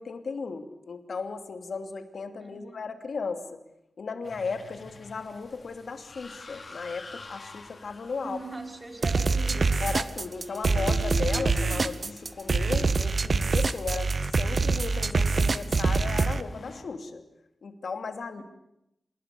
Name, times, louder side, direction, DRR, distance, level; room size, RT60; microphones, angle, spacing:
voice 1, 0.0-3.6 4.0-8.4 9.8-14.1 14.4-17.2 17.6-18.4, left 4 dB, 75° left, 8 dB, 2.7 m, -35 dB
voice 2, 2.4-2.9 8.2-9.9 18.4-18.5, right 2 dB, 30° right, 4 dB, 5.4 m, -41 dB
sound 1, 4.2-16.8, left 3 dB, 55° left, 4.0 m, -45 dB
sound 2, 9.0-16.4, right 4 dB, 60° right, 1.0 m, -25 dB
26.5 x 21.0 x 8.5 m, 0.83 s
cardioid pair, 60°, 0 cm